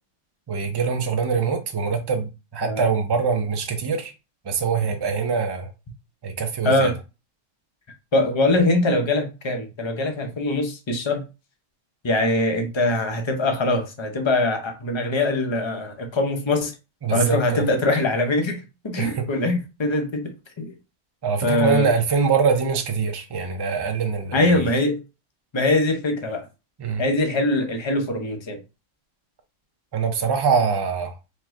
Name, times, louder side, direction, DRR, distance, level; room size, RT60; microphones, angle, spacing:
voice 1, 0.5-4.1 4.4-5.7 6.2-6.9 17.0-17.7 19.0-19.3 21.2-24.6 26.8-27.0 29.9-31.1, right 5 dB, 30° right, 0.4 m, -23 dB
voice 2, 2.6-2.9 6.6-7.0 8.1-11.2 12.0-16.7 17.1-20.7 21.4-21.9 24.3-25.0 25.5-26.5 27.0-28.6, left 2 dB, 30° left, 0.6 m, -22 dB
4.6 x 2.2 x 3.6 m
omnidirectional pair, 1.3 m